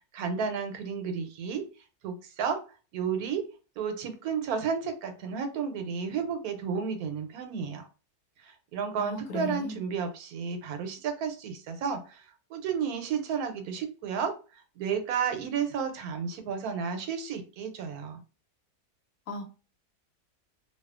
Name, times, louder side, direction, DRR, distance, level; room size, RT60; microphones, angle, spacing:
voice 1, 0.1-1.6 2.0-2.6 2.9-3.5 3.8-7.9 8.4-18.2, right 6 dB, 80° right, 1.1 m, -32 dB
voice 2, 9.0-9.8 19.3-19.4, left 2 dB, 90° left, 1.2 m, -35 dB
2.6 x 2.3 x 2.4 m
omnidirectional pair, 1.6 m